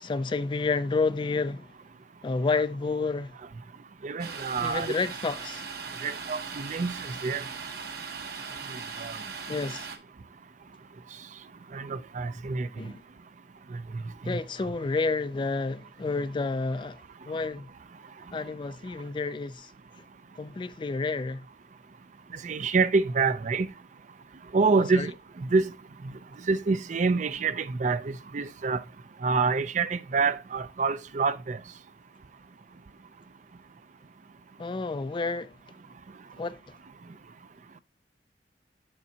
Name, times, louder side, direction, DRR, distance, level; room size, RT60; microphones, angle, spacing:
voice 1, 0.0-1.7 2.2-3.3 4.6-5.6 9.5-9.9 12.8-13.0 14.2-17.7 18.3-19.7 20.4-21.4 24.9-25.1 34.6-35.5 36.4-36.6, left 3 dB, 25° left, 0.3 m, -30 dB
voice 2, 4.0-4.9 6.0-7.4 9.0-9.2 11.7-12.7 13.9-14.4 22.4-23.7 24.5-25.1 25.4-25.7 26.5-28.8 29.2-31.6, right 4 dB, 45° right, 0.4 m, -27 dB
Domestic sounds home sounds, 4.2-10.0, right 5 dB, 65° right, 1.2 m, -39 dB
8.3 x 6.7 x 2.8 m
head